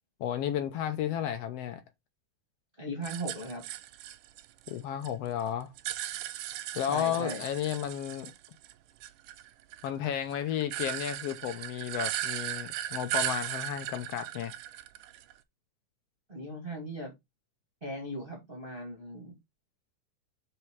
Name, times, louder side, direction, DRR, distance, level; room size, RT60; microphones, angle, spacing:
voice 1, 0.2-1.8 4.7-5.7 6.7-8.3 9.8-14.5, left 10 dB, 85° left, 1.3 m, -33 dB
voice 2, 2.8-3.6 6.9-7.4 16.3-17.1 17.8-19.4, right 1 dB, 20° right, 2.2 m, -38 dB
sound 1, 3.0-5.1 5.4-8.7 9.0-15.4, right 13 dB, 80° right, 2.1 m, -37 dB
6.4 x 4.8 x 4.7 m
omnidirectional pair, 3.8 m